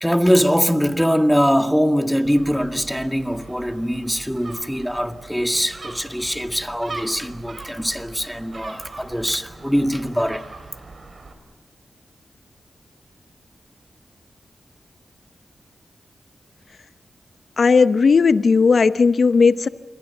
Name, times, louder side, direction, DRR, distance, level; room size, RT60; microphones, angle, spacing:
voice 1, 0.0-10.4, equal, ahead, 2.0 m, -22 dB
Gull seagull, 2.2-11.3, right 3 dB, 60° right, 4.7 m, -40 dB
voice 2, 17.6-19.7, left 5 dB, 65° left, 0.8 m, -15 dB
27.5 x 22.0 x 7.2 m
cardioid pair, 40°, 0 cm